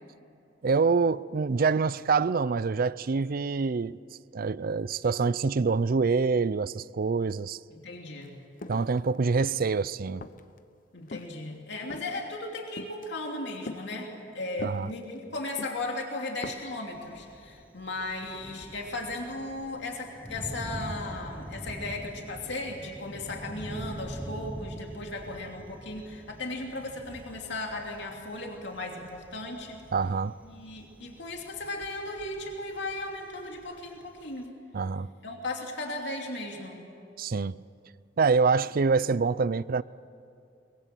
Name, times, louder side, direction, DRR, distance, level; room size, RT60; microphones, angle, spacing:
voice 1, 0.6-4.0 4.3-7.6 8.7-10.3 14.6-14.9 29.9-30.4 34.7-35.1 37.2-37.6 38.2-39.8, right 4 dB, 50° right, 0.5 m, -26 dB
voice 2, 7.7-8.4 10.9-29.8 30.4-34.5 35.2-36.8, left 2 dB, 70° left, 2.8 m, -36 dB
sound 1, 8.2-8.3 8.6-9.7 10.2-10.6 11.1-11.4 11.9-12.2 12.8-13.1 13.6-13.8 14.6-15.2 15.6-15.8 16.3-16.7, left 2 dB, 50° left, 0.9 m, -41 dB
Thunder, 16.9-34.5, equal, 10° right, 1.0 m, -44 dB
23.5 x 22.5 x 7.7 m
head